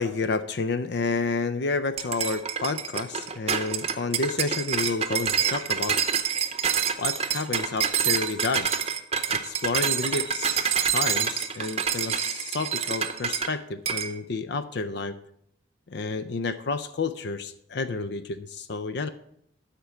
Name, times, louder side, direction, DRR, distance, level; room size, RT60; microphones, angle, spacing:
voice 1, 0.0-6.0 7.0-8.7 9.3-15.2 15.9-19.1, left 4 dB, 60° left, 12 dB, 0.5 m, -30 dB
sound 1, 2.0-13.5 13.9-14.1, right 7 dB, 35° right, 0.7 m, -27 dB
12.5 x 4.4 x 6.9 m, 0.74 s
head